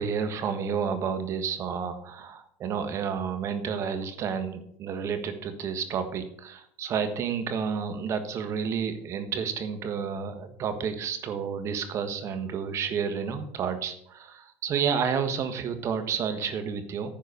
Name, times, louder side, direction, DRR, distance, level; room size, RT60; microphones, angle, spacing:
voice 1, 0.0-17.1, right 6 dB, 45° right, 9 dB, 1.4 m, -30 dB
10.5 x 4.6 x 6.8 m, 0.68 s
supercardioid pair, 95°, 7 cm